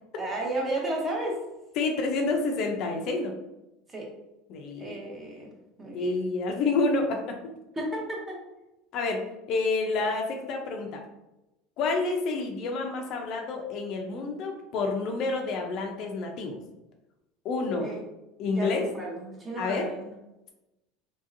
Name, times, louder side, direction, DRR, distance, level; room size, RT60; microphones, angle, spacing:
voice 1, 0.2-1.4 3.9-4.1 4.8-5.5 5.8-6.1 7.8-8.4 17.8-18.0 18.5-20.1, right 1 dB, 15° right, -1 dB, 0.7 m, -33 dB
voice 2, 1.8-3.3 4.5-5.0 5.9-7.4 8.9-11.0 11.8-16.6 17.4-17.9 18.4-18.9 19.6-19.9, left 3 dB, 50° left, 3 dB, 0.4 m, -28 dB
2.9 x 2.7 x 2.5 m, 0.96 s
supercardioid pair, 140°, 0 cm